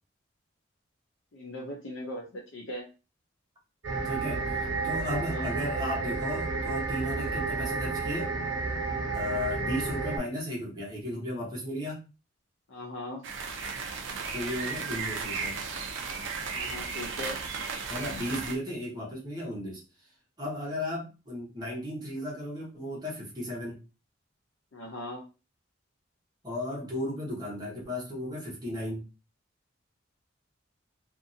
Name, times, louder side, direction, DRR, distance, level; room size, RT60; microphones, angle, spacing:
voice 1, 1.3-2.8 5.3-5.5 12.7-13.3 16.5-17.4 24.7-25.2, left 1 dB, 70° left, -1 dB, 0.6 m, -39 dB
sound 1, 3.8-10.2, right 3 dB, 85° right, 1.1 m, -31 dB
voice 2, 4.0-4.5 4.8-8.3 9.1-12.0 14.3-15.6 17.9-20.1 20.4-23.8 26.4-29.0, left 1 dB, 20° right, -4 dB, 1.0 m, -35 dB
sound 2, 13.2-18.6, right 5 dB, 70° right, 0.5 m, -35 dB
2.6 x 2.6 x 2.7 m, 0.30 s
head